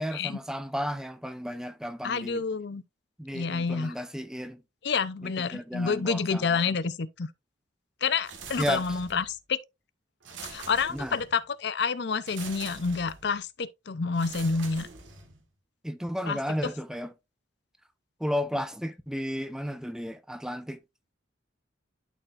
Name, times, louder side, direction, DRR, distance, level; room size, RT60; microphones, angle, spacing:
voice 1, 0.0-2.4 3.2-4.6 5.2-6.4 8.6-8.8 10.9-11.2 15.8-17.1 18.2-20.8, equal, 5° right, 0.5 m, -33 dB
voice 2, 2.0-2.8 3.3-4.0 4.8-7.3 8.0-9.6 10.4-14.9 16.3-16.4, left 5 dB, 60° left, 0.6 m, -29 dB
sound 1, 8.2-9.3 10.2-11.4 12.2-13.3 14.1-15.4, right 5 dB, 75° right, 1.5 m, -44 dB
12.0 x 4.4 x 2.4 m
head